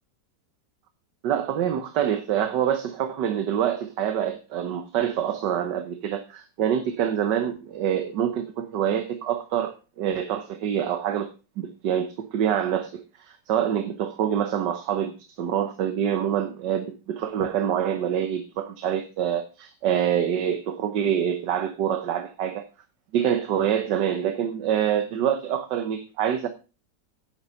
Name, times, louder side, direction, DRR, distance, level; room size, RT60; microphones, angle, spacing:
voice 1, 1.2-11.3 11.6-15.1 15.4-22.6 23.1-26.5, right 9 dB, 80° right, 1.6 m, -26 dB
9.6 x 8.3 x 5.6 m
omnidirectional pair, 1.9 m